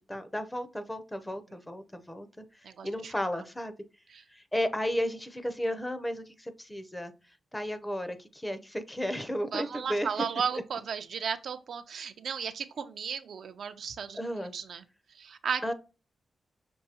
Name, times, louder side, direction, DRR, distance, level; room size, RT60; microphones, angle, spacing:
voice 1, 0.0-2.3 2.8-3.7 4.3-7.1 7.5-10.1 14.1-14.5 15.6-15.7, equal, 10° left, 0.6 m, -33 dB
voice 2, 2.6-3.1 4.1-4.2 9.5-14.2 14.5-14.8 15.1-15.6, right 7 dB, 75° right, 0.5 m, -35 dB
6.0 x 2.6 x 2.8 m
wide cardioid pair, 105°, 0 cm